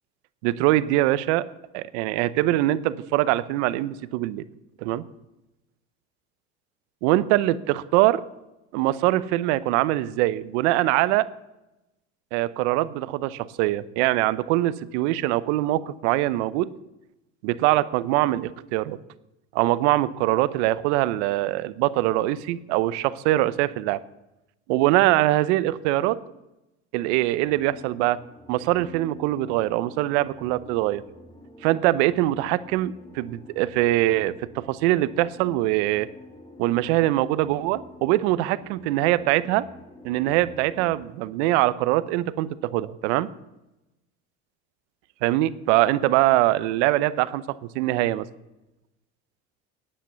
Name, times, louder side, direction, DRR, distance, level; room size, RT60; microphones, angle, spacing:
voice 1, 0.4-1.5 1.7-4.4 4.8-5.0 7.0-8.2 8.7-11.3 12.3-16.7 17.4-19.0 19.5-24.0 24.7-26.2 26.9-28.2 28.5-31.0 31.6-36.1 36.6-39.7 40.0-43.3 45.2-48.3, right 16 dB, 80° right, 17 dB, 0.7 m, -23 dB
sound 1, 27.4-41.0, left 1 dB, 15° left, 1.8 m, -48 dB
10.0 x 8.7 x 6.9 m, 0.92 s
supercardioid pair, 90°, 34 cm